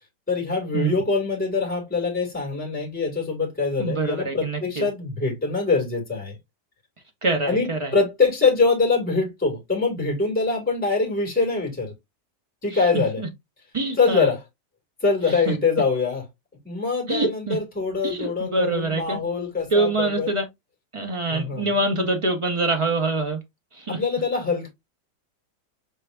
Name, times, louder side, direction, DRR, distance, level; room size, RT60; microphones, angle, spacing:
voice 1, 0.3-6.4 7.5-11.9 12.6-13.2 14.0-14.4 15.0-16.2 16.6-20.3 21.3-21.7 23.9-24.7, left 4 dB, 5° left, 1.9 m, -24 dB
voice 2, 3.8-4.8 7.2-7.9 12.7-13.3 13.7-14.3 15.3-15.6 17.1-17.6 18.0-19.2 19.7-20.4 20.9-23.4 23.7-24.0, right 2 dB, 35° right, 0.5 m, -25 dB
5.5 x 3.4 x 2.4 m
omnidirectional pair, 1.8 m